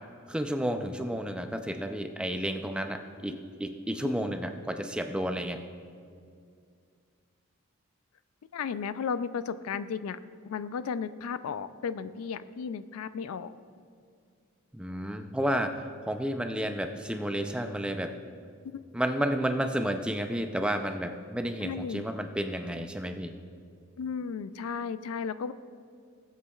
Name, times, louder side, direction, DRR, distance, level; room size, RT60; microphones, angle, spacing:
voice 1, 0.3-5.6 14.7-18.1 18.9-23.3, equal, 5° right, 6 dB, 0.4 m, -31 dB
voice 2, 8.5-10.2 10.5-13.5 21.6-22.0 24.0-25.5, left 6 dB, 85° left, 14 dB, 0.4 m, -34 dB
20.0 x 8.2 x 2.3 m, 2.3 s
head